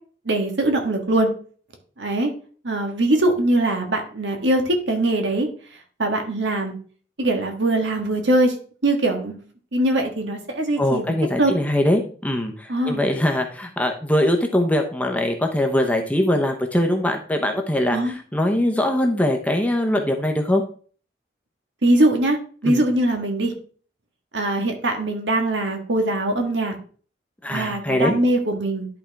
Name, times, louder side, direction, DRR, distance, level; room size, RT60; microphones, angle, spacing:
voice 1, 0.2-1.3 2.0-2.3 2.6-5.5 6.0-6.7 7.2-8.5 8.8-9.4 9.7-11.1 11.4-11.5 12.7-13.0 17.9-18.1 21.8-22.4 22.6-23.5 24.3-26.8 27.5-28.9, right 1 dB, 80° right, 4 dB, 1.6 m, -21 dB
voice 2, 10.8-20.6 22.6-22.8 27.4-28.2, left 1 dB, 10° left, 3 dB, 0.8 m, -22 dB
11.0 x 4.4 x 3.5 m, 0.42 s
head